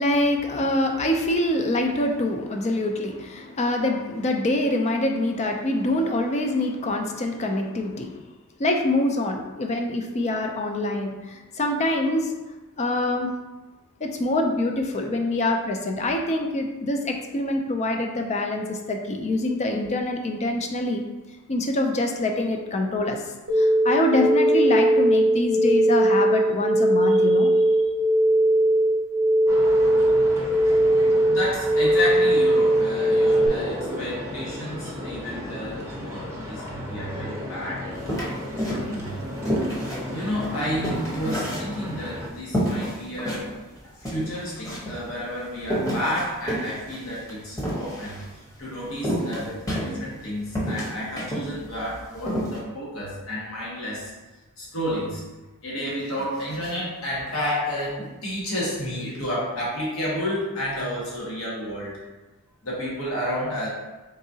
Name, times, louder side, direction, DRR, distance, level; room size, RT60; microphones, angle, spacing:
voice 1, 0.0-8.2 8.6-12.3 12.8-13.3 14.0-21.0 21.5-23.2 23.6-27.5, left 1 dB, 30° left, 3 dB, 0.4 m, -25 dB
sound 1, 23.5-33.5, right 1 dB, 65° right, 0.8 m, -19 dB
sound 2, 29.5-42.3, left 1 dB, 15° right, 0.6 m, -35 dB
voice 2, 31.3-37.8 38.6-39.2 39.9-43.5 44.0-54.1 54.6-55.2 55.6-61.9 62.6-63.7, equal, 65° left, -6 dB, 1.2 m, -31 dB
sound 3, 38.1-39.1 39.4-42.1 42.5-43.4 43.8-43.9 44.0-45.0 45.6-48.2 49.0-50.2 50.5-51.5 51.8-51.9 52.2-52.6, equal, 15° left, 1.0 m, -28 dB
3.9 x 3.6 x 2.7 m, 1.1 s
head